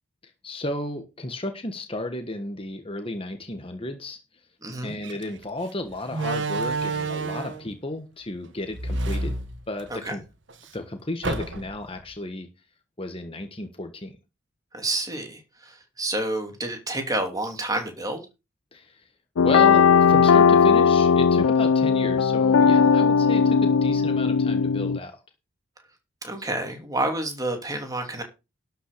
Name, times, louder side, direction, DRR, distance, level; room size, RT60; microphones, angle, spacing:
voice 1, 0.2-4.2 4.8-9.3 9.7-10.2 10.7-12.5 13.0-14.2 18.7-19.0 19.4-25.2, left 1 dB, 25° left, 1.4 m, -33 dB
voice 2, 4.6-4.9 10.0-10.2 14.7-18.2 26.2-28.2, right 2 dB, 15° right, 3.0 m, -29 dB
Slam, 5.0-5.2 6.1-7.7 8.7-10.1 10.5-10.6 11.2-11.9, right 3 dB, 60° right, 1.6 m, -29 dB
sound 1, 19.4-25.0, left 6 dB, 85° left, 0.5 m, -18 dB
12.0 x 5.8 x 6.8 m
head